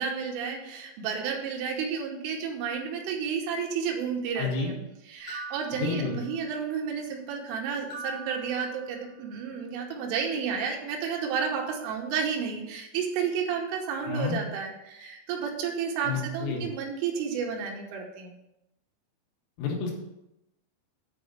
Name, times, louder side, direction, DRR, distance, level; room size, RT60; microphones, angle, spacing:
voice 1, 0.0-4.8 5.1-18.3, right 6 dB, 75° right, 1 dB, 3.4 m, -31 dB
voice 2, 4.4-4.7 5.7-6.2 14.1-14.4 16.0-16.6 19.6-19.9, left 4 dB, 80° left, -1 dB, 4.3 m, -30 dB
sound 1, 5.3-6.7 7.9-9.4, right 3 dB, 55° left, 2.7 m, -43 dB
9.1 x 4.2 x 6.5 m, 0.88 s
omnidirectional pair, 6.0 m